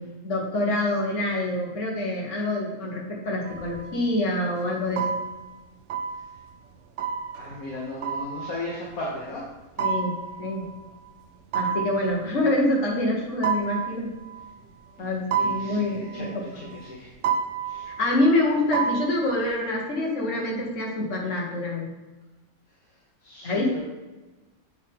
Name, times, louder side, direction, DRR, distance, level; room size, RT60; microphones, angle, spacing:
voice 1, 0.0-5.1 9.8-10.1 10.4-10.7 11.5-14.1 15.0-16.8 18.0-21.9 23.4-23.8, left 1 dB, 55° left, -2 dB, 1.9 m, -26 dB
sound 1, 3.4-4.4 4.9-5.6 5.9-6.5 7.0-8.9 9.8-11.1 11.5-12.4 13.4-14.7 15.3-16.9 17.2-18.3 18.7-19.5, right 6 dB, 65° right, 0.8 m, -30 dB
voice 2, 7.4-9.4 15.4-17.1 17.6-17.9 23.2-23.8, left 2 dB, 70° left, -4 dB, 1.5 m, -36 dB
8.0 x 4.7 x 3.6 m, 1.2 s
omnidirectional pair, 1.6 m